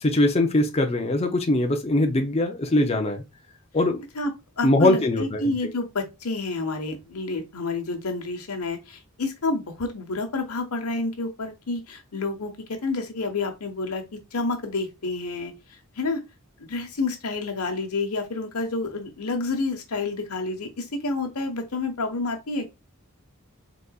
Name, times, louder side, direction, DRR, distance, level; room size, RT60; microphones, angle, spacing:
voice 1, 0.0-3.2 3.7-4.0 4.6-5.5, left 1 dB, 30° left, 0.6 m, -22 dB
voice 2, 4.6-15.5 16.0-16.2 16.6-22.7, left 3 dB, 90° left, 1.2 m, -29 dB
4.1 x 3.8 x 2.3 m
head